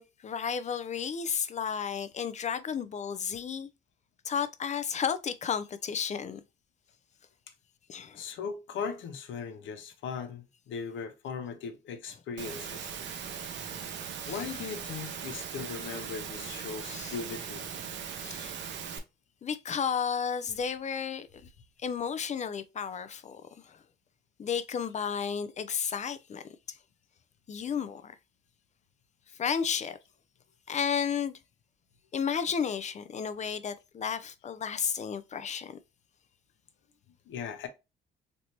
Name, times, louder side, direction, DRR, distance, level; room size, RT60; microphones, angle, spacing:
voice 1, 0.0-3.7 4.2-6.4 7.9-8.2 13.1-13.2 13.7-13.9 14.3-14.5 16.9-17.1 18.2-18.8 19.4-21.3 21.8-23.4 23.7-23.8 24.4-26.4 27.5-28.1 29.4-30.0 30.7-31.4 32.1-35.8, left 7 dB, 35° left, 0.4 m, -33 dB
voice 2, 8.1-13.0 14.3-17.7 37.3-37.7, left 6 dB, 75° left, 0.7 m, -38 dB
Engine / Mechanisms, 12.4-19.0, right 7 dB, 65° right, 0.6 m, -39 dB
3.3 x 2.8 x 2.8 m
cardioid pair, 90°, 20 cm